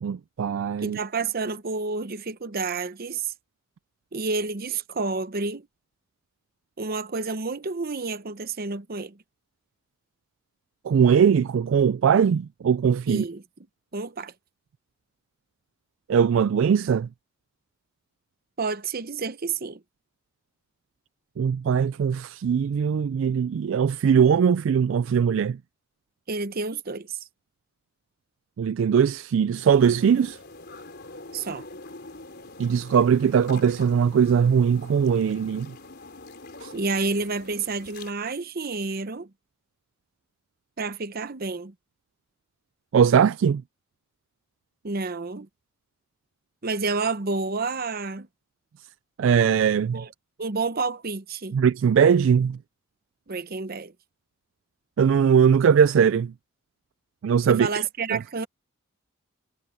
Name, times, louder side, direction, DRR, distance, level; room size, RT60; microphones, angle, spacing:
voice 1, 0.0-1.0 10.8-13.2 16.1-17.1 21.4-25.6 28.6-30.4 32.6-35.7 36.6-36.7 42.9-43.6 49.2-50.0 51.5-52.6 55.0-56.3 57.2-57.8 58.1-58.2, right 7 dB, 60° right, 0.3 m, -20 dB
voice 2, 0.8-3.3 4.1-5.7 6.8-9.2 13.1-13.4 13.9-14.3 18.6-19.8 26.3-27.2 31.3-31.6 36.7-39.3 40.8-41.7 44.8-45.5 46.6-48.3 49.9-50.1 50.4-51.6 53.3-53.9 57.5-58.5, right 4 dB, 45° right, 0.8 m, -29 dB
sound 1, 29.5-38.1, left 2 dB, 50° left, 4.2 m, -44 dB
head